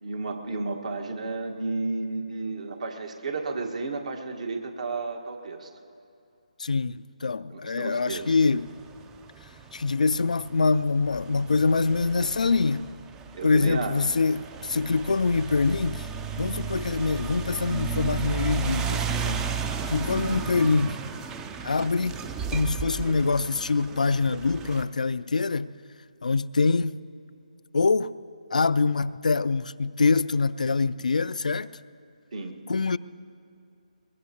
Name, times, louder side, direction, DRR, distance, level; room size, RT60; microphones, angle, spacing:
voice 1, 0.0-5.7 7.5-8.3 13.3-14.0 19.7-20.4 32.3-32.6, right 3 dB, 60° right, 1.7 m, -32 dB
voice 2, 6.6-8.7 9.7-12.9 13.4-16.1 16.4-19.4 19.9-21.0 21.6-22.2 22.5-25.7 26.2-27.0 27.7-28.1 28.5-31.7 32.7-33.0, left 4 dB, 70° left, 0.4 m, -24 dB
sound 1, 8.1-24.9, right 6 dB, 10° right, 0.4 m, -34 dB
23.0 x 21.0 x 3.0 m
figure-of-eight pair, 150°, 4 cm